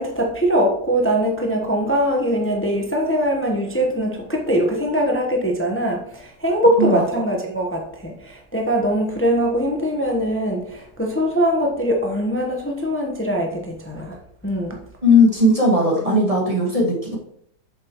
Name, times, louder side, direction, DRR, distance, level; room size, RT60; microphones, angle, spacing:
voice 1, 0.0-14.2 14.4-14.8, equal, 10° left, 1 dB, 0.9 m, -22 dB
voice 2, 6.8-7.2 15.0-17.2, left 2 dB, 20° right, -1 dB, 1.7 m, -17 dB
8.4 x 7.0 x 3.1 m, 0.67 s
omnidirectional pair, 1.8 m